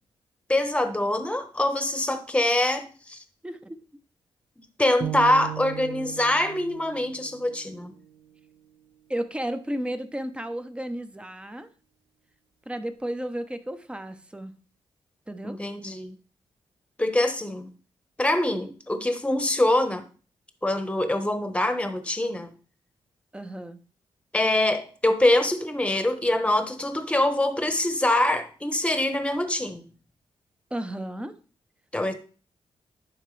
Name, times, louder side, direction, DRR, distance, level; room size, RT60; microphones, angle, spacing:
voice 1, 0.5-3.2 4.8-7.9 15.4-16.1 17.0-17.7 18.2-20.0 20.6-22.5 24.3-29.9 31.9-32.1, left 1 dB, 10° left, 1.1 m, -24 dB
voice 2, 3.4-3.8 9.1-11.7 12.7-14.6 15.3-15.6 23.3-23.8 30.7-31.3, right 1 dB, 10° right, 0.8 m, -33 dB
sound 1, 5.0-9.1, right 11 dB, 60° right, 1.3 m, -38 dB
11.0 x 4.6 x 3.3 m
cardioid pair, 85°, 10 cm